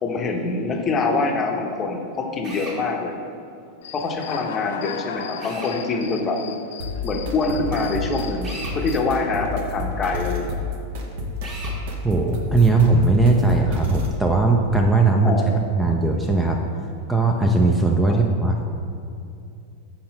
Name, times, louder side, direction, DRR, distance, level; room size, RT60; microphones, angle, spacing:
voice 1, 0.0-3.2 3.9-6.4 7.0-10.6 15.2-15.7 18.1-18.2, left 3 dB, 25° left, 2 dB, 0.8 m, -25 dB
Drill, 2.4-2.8 5.4-5.8 8.4-8.8 11.4-11.8, right 2 dB, 30° right, 1.5 m, -36 dB
Human voice / Cricket, 3.8-9.0, left 7 dB, 60° left, 0.4 m, -36 dB
sound 1, 6.8-14.2, left 3 dB, 50° right, 0.8 m, -30 dB
voice 2, 12.0-16.6 17.1-18.6, right 3 dB, 5° right, 1 dB, 0.5 m, -19 dB
5.6 x 4.3 x 5.4 m, 2.6 s
figure-of-eight pair, 90°, 0 cm